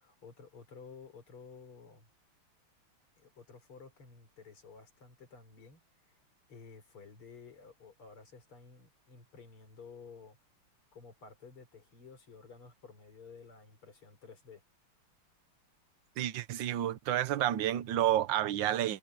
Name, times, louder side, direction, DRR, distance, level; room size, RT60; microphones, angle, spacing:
voice 1, 0.0-2.1 3.2-6.2 6.5-10.4 10.9-14.6, left 5 dB, 75° left, 5.4 m, -53 dB
voice 2, 16.2-19.0, right 12 dB, 65° right, 1.5 m, -30 dB
omnidirectional pair, 2.4 m